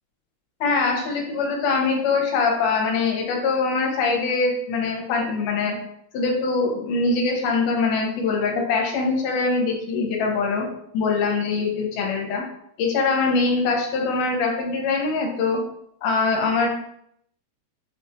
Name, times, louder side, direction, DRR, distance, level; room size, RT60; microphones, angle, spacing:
voice 1, 0.6-5.8 6.1-10.7 10.9-12.4 12.8-15.6 16.0-16.7, left 4 dB, 75° left, 1 dB, 2.2 m, -23 dB
5.6 x 3.0 x 2.3 m, 0.71 s
omnidirectional pair, 3.9 m